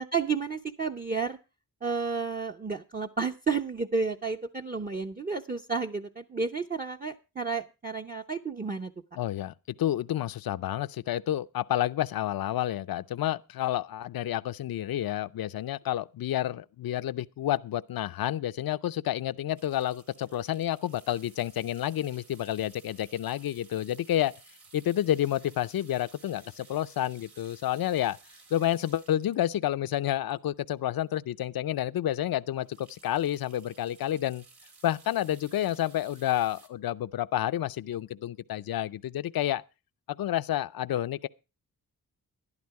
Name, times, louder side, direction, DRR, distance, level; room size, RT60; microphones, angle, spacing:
voice 1, 0.0-1.4 1.8-8.9, right 4 dB, 25° right, 0.8 m, -31 dB
voice 2, 9.2-24.3 24.7-28.2 28.5-34.4 34.8-39.6 40.1-41.3, left 12 dB, 65° left, 0.6 m, -30 dB
sound 1, 19.6-30.9 31.3-31.4 31.7-31.8 32.2-36.7, right 4 dB, 75° right, 2.3 m, -57 dB
12.0 x 11.0 x 4.7 m
cardioid pair, 70°, 38 cm